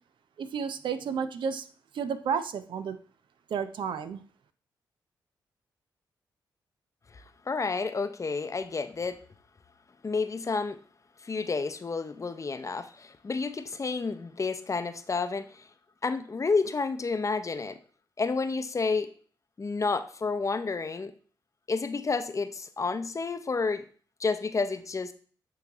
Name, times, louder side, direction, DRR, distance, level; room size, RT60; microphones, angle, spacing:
voice 1, 0.4-1.6 1.9-3.0 3.5-4.2, right 6 dB, 70° right, 11 dB, 0.5 m, -31 dB
voice 2, 7.1-9.2 10.0-10.8 11.2-15.7 16.0-17.8 18.2-19.1 19.6-21.1 21.7-23.8 24.2-25.1, left 4 dB, 40° left, 11 dB, 0.7 m, -30 dB
8.4 x 3.3 x 3.5 m, 0.43 s
supercardioid pair, 50°, 8 cm